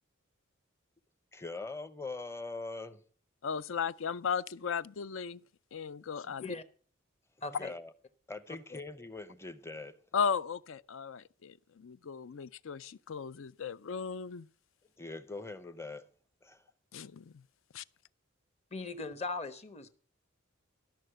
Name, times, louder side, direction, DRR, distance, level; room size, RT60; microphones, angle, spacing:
voice 1, 1.3-3.0 7.6-7.9 8.3-10.0 15.0-16.0 16.4-16.6, left 3 dB, 15° left, 0.8 m, -42 dB
voice 2, 3.4-5.4 5.7-6.5 10.1-14.5 16.9-17.4 17.7-17.8, left 6 dB, 70° left, 0.5 m, -36 dB
voice 3, 6.2-6.6 7.4-7.7 8.7-8.8 18.7-19.9, left 3 dB, 35° left, 1.1 m, -39 dB
13.0 x 6.6 x 7.8 m
head